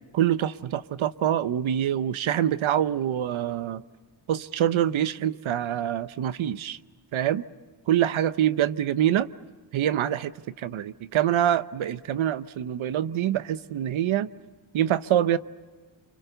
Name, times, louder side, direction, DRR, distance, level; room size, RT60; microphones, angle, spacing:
voice 1, 0.1-3.8 4.3-6.8 7.1-7.4 7.9-9.3 9.7-14.3 14.7-15.4, right 11 dB, 80° right, 15 dB, 0.9 m, -25 dB
29.5 x 24.5 x 6.9 m, 1.5 s
wide cardioid pair, 120°, 47 cm